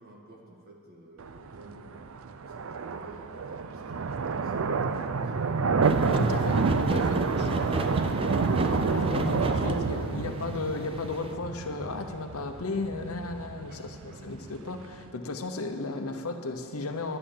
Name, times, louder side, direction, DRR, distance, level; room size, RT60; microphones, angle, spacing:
voice 1, 0.0-5.7 13.6-14.3, right 1 dB, 45° right, -1 dB, 1.9 m, -52 dB
sound 1, 1.2-15.1, right 4 dB, 75° right, 0.5 m, -29 dB
sound 2, 5.8-10.4 10.7-10.8 11.2-11.3, right 2 dB, 25° right, 0.5 m, -31 dB
voice 2, 6.2-8.3 8.7-17.2, left 3 dB, 85° left, 6 dB, 0.9 m, -35 dB
11.0 x 9.9 x 7.3 m, 2.5 s
head